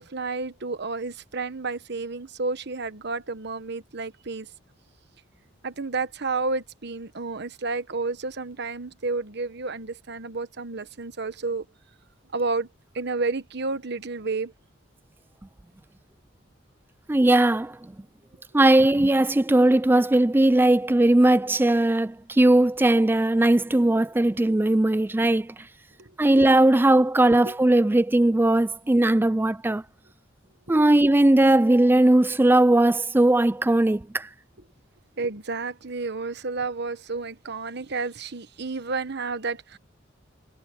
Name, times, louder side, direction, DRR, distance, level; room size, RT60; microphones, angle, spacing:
voice 1, 0.0-4.5 5.6-11.6 12.3-12.7 12.9-14.5 26.0-26.1 26.4-26.5 27.4-27.5 30.7-30.8 35.2-39.8, right 3 dB, 55° right, 1.2 m, -31 dB
voice 2, 17.1-17.8 18.5-25.5 26.2-29.8 30.7-34.3, right 1 dB, 10° right, 0.4 m, -19 dB
head